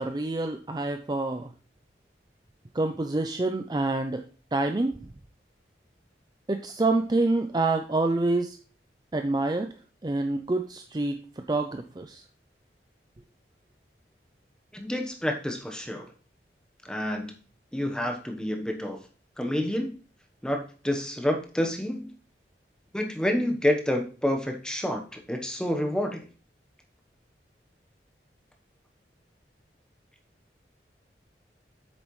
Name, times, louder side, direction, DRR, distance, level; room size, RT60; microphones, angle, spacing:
voice 1, 0.0-1.5 2.7-4.2 4.5-5.0 6.5-8.6 9.1-9.7 10.0-11.2 11.5-12.2, right 2 dB, 25° right, 6 dB, 0.4 m, -27 dB
voice 2, 14.7-16.1 16.8-17.3 17.7-19.0 19.4-19.9 20.4-22.1 22.9-26.3, left 1 dB, 5° left, 3 dB, 1.0 m, -28 dB
8.3 x 6.5 x 3.1 m, 0.39 s
head